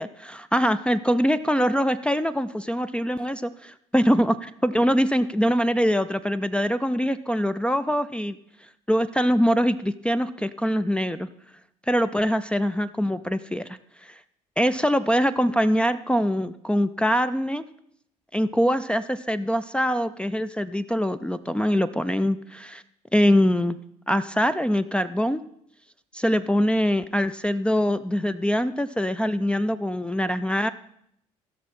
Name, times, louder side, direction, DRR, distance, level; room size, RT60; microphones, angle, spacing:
voice 1, 0.0-11.3 11.9-14.2 14.6-17.6 18.3-22.8 23.1-23.8 24.1-25.4 26.1-30.7, equal, 5° left, 8 dB, 0.4 m, -23 dB
15.5 x 6.3 x 4.3 m, 0.71 s
hypercardioid pair, 55°, 17 cm